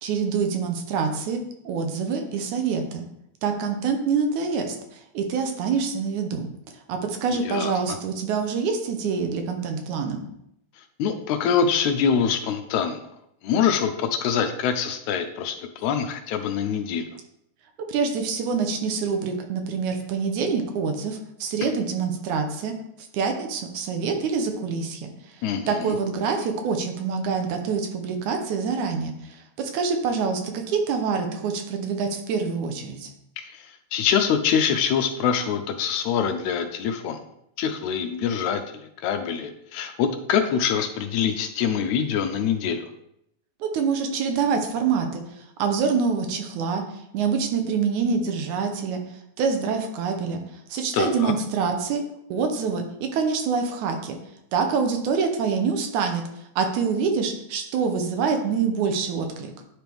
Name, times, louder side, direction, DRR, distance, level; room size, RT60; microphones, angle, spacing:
voice 1, 0.0-3.0 3.4-6.5 6.9-10.2 17.9-22.7 23.1-25.1 25.7-29.1 29.6-33.1 43.6-45.2 45.6-46.8 47.1-49.0 49.4-50.4 50.7-52.0 52.3-54.2 54.5-56.2 56.6-59.5, right 5 dB, 80° right, 5 dB, 2.2 m, -26 dB
voice 2, 7.3-7.7 11.0-13.0 13.4-17.1 21.6-21.7 25.4-25.9 33.4-33.6 33.9-37.2 37.6-42.9 50.9-51.3, left 7 dB, 80° left, 7 dB, 1.9 m, -24 dB
9.5 x 4.5 x 3.5 m, 0.77 s
omnidirectional pair, 3.5 m